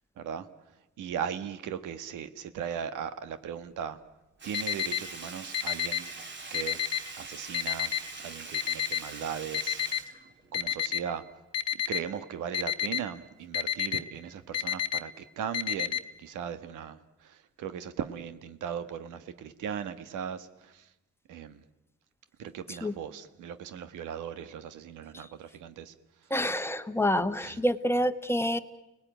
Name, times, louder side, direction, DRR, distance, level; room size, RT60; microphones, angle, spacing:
voice 1, 0.2-0.5 1.0-4.0 4.4-6.1 6.5-6.8 7.2-7.9 8.2-10.1 10.5-11.2 11.7-20.9 21.3-21.6 22.4-25.9 27.3-27.6, right 8 dB, 85° right, 11 dB, 1.5 m, -38 dB
Sink (filling or washing), 4.4-10.9 11.3-11.4, right 3 dB, 40° right, 2.6 m, -44 dB
Alarm, 4.5-5.0 5.5-6.0 6.5-7.0 7.5-8.0 8.5-9.0 9.5-10.0 10.5-11.0 11.5-12.0 12.5-13.0 13.5-14.0 14.5-15.0 15.5-16.0, left 9 dB, 55° left, 1.5 m, -29 dB
voice 2, 26.3-28.6, equal, 10° left, 10 dB, 1.3 m, -27 dB
29.5 x 19.0 x 9.2 m, 1.0 s
cardioid pair, 90°, 30 cm